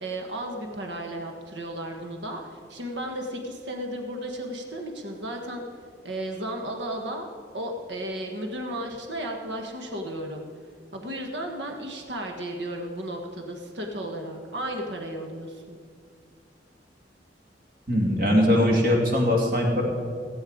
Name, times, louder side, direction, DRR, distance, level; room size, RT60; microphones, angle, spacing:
voice 1, 0.0-5.6 6.0-7.3 7.5-10.5 10.9-15.8, right 1 dB, 75° right, 3 dB, 1.4 m, -34 dB
voice 2, 17.9-19.8, left 1 dB, 55° right, -1 dB, 2.6 m, -21 dB
17.0 x 8.5 x 5.0 m, 2.2 s
head